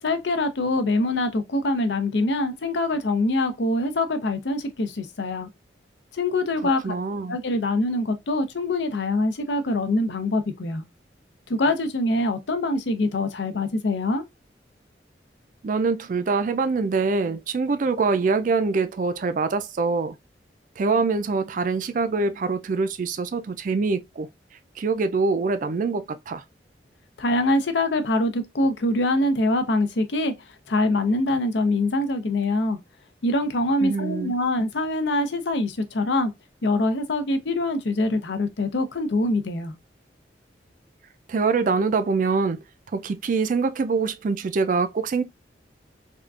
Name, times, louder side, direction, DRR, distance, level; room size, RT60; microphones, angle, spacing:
voice 1, 0.0-5.5 6.1-7.0 7.3-10.8 11.5-14.2 27.2-32.8 33.2-36.3 36.6-39.7, left 2 dB, 75° left, 0.6 m, -24 dB
voice 2, 6.8-7.4 15.6-20.1 20.8-24.3 24.8-26.4 33.8-34.3 41.3-42.6 42.9-45.2, right 4 dB, 45° right, 0.4 m, -24 dB
3.5 x 2.4 x 2.3 m
head